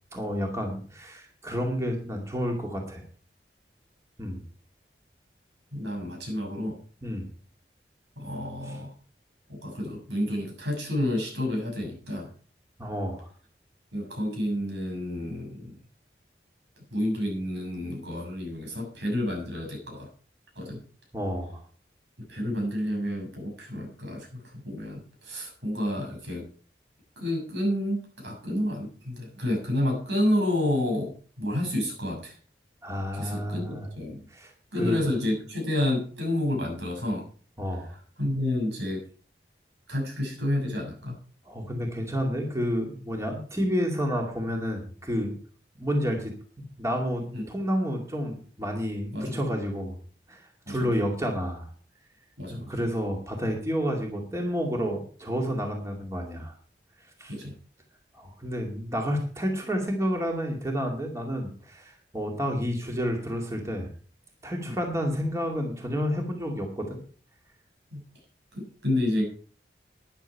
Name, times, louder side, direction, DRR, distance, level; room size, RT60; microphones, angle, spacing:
voice 1, 0.1-3.0 4.2-4.4 7.0-7.3 8.7-8.8 12.8-13.3 21.1-21.6 32.8-33.9 34.3-34.5 34.8-35.0 37.6-37.9 41.5-45.3 45.8-46.3 46.8-50.0 50.3-51.7 52.5-56.5 57.2-57.3 58.1-63.9 64.4-67.0, equal, 15° right, 1 dB, 2.3 m, -30 dB
voice 2, 5.7-6.8 8.2-8.9 9.5-12.3 13.9-15.8 16.9-20.1 20.5-20.8 22.2-26.5 27.2-32.4 33.1-34.2 34.7-37.3 37.8-37.9 38.2-39.0 39.9-41.2 47.3-47.5 49.1-49.4 50.7-51.0 52.4-52.7 57.3-57.5 64.7-64.8 67.9-68.0 68.5-69.2, left 1 dB, 90° right, 1 dB, 6.6 m, -30 dB
12.5 x 10.5 x 4.6 m, 0.42 s
head